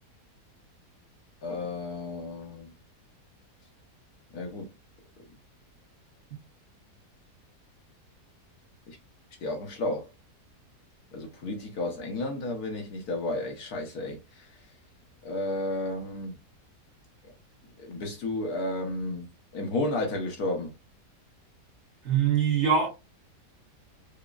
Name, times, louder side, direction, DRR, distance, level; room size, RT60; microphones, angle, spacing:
voice 1, 1.4-2.7 4.3-4.7 8.9-9.0 9.4-10.1 11.1-14.2 15.2-16.3 17.8-19.3 19.5-20.7, left 2 dB, 65° left, 1.4 m, -32 dB
voice 2, 22.0-22.9, right 7 dB, 50° right, 1.2 m, -23 dB
5.0 x 2.1 x 2.4 m
omnidirectional pair, 1.8 m